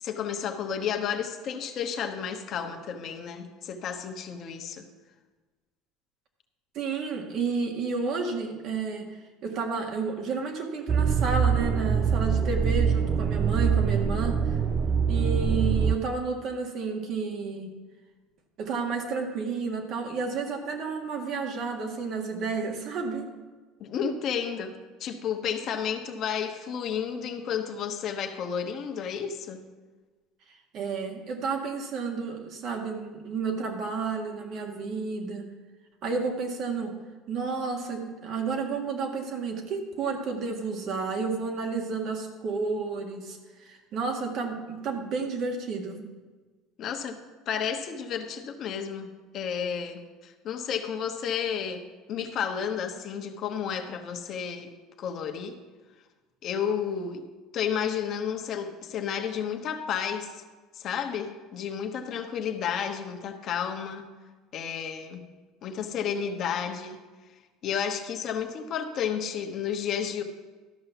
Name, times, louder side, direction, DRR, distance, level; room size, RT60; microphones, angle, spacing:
voice 1, 0.0-4.8 23.8-24.7 25.0-29.6 46.8-47.2 47.5-54.7 55.0-55.5 56.4-57.2 57.5-60.4 60.7-64.0 64.5-65.3 65.6-67.0 67.6-70.2, left 7 dB, 50° left, 5 dB, 1.1 m, -32 dB
voice 2, 6.7-14.6 15.1-17.7 18.6-23.3 30.7-35.5 36.0-37.0 37.3-46.1, right 4 dB, 55° right, 3 dB, 1.8 m, -31 dB
sound 1, 10.9-16.0, right 6 dB, 35° right, 0.5 m, -24 dB
12.5 x 5.6 x 6.9 m, 1.3 s
supercardioid pair, 110°, 0 cm